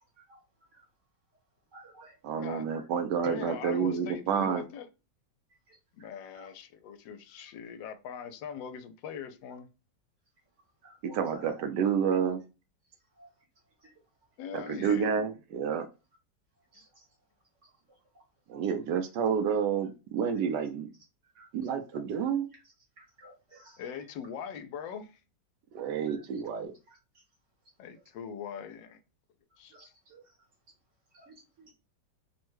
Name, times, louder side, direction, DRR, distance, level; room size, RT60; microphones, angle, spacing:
voice 1, 1.7-2.2 2.6-2.8 5.7-6.1 6.3-6.5 10.8-11.7 13.2-13.3 13.8-13.9 16.7-17.1 17.6-17.7 18.1-18.2 21.3-21.5 21.9-22.0 22.5-22.6 23.0-23.9 26.1-26.2 26.9-27.2 29.6-30.3 31.1-31.7, right 1 dB, 50° right, 1.0 m, -55 dB
voice 2, 2.2-4.6 11.0-12.4 14.5-15.9 18.5-20.9 21.5-22.5 25.7-26.7, right 7 dB, 75° right, 1.1 m, -29 dB
voice 3, 3.2-4.9 5.9-9.7 14.4-15.1 23.8-25.2 27.8-29.0 29.6-29.9, left 7 dB, 85° left, 1.3 m, -41 dB
3.4 x 2.1 x 3.0 m
omnidirectional pair, 2.0 m